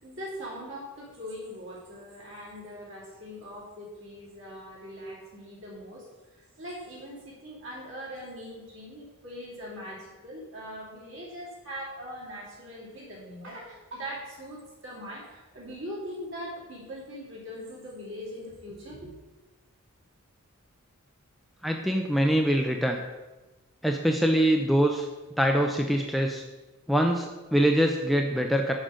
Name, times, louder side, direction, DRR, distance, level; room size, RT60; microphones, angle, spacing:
voice 1, 0.0-6.1 6.3-19.1, equal, 55° right, -4 dB, 2.6 m, -41 dB
voice 2, 21.6-23.0 23.8-25.1 25.4-26.4 26.9-28.7, equal, ahead, 2 dB, 0.3 m, -24 dB
6.2 x 5.0 x 6.3 m, 1.1 s
head